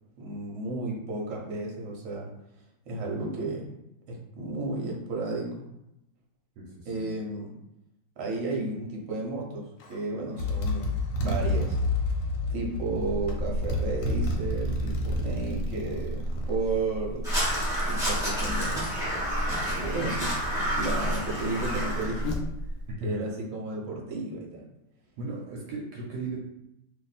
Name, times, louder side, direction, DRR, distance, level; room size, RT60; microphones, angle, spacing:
voice 1, 0.2-2.3 2.9-3.7 4.1-5.6 6.8-7.6 8.2-11.8 12.5-17.3 17.9-18.9 19.7-20.3 20.7-22.3 23.0-24.6, right 2 dB, 55° right, -1 dB, 1.0 m, -33 dB
voice 2, 6.6-7.1 23.0-23.2 25.2-26.4, right 2 dB, 75° right, -2 dB, 1.1 m, -36 dB
Motorcycle, 9.8-10.0 10.4-16.6, left 1 dB, 85° left, 1.3 m, -30 dB
Buzz, 13.0-22.9, equal, 70° left, 0.8 m, -34 dB
Crow, 17.2-22.2, equal, 5° right, 0.6 m, -30 dB
2.8 x 2.5 x 4.1 m, 0.84 s
omnidirectional pair, 2.0 m